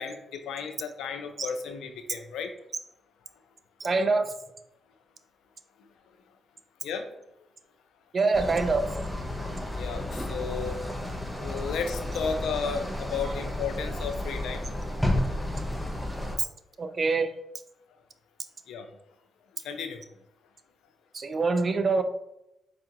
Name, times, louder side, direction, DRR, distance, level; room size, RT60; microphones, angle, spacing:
voice 1, 0.0-2.5 6.8-7.1 9.7-10.8 11.4-14.7 18.7-18.9 19.6-20.0, left 6 dB, 85° left, 6 dB, 0.4 m, -33 dB
voice 2, 3.8-4.3 8.1-8.9 16.4-16.5 16.8-17.3 21.1-22.0, right 3 dB, 45° right, 9 dB, 0.4 m, -25 dB
sound 1, 8.3-16.4, left 1 dB, ahead, 0.7 m, -32 dB
4.5 x 2.4 x 2.8 m, 0.85 s
cardioid pair, 70°, 0 cm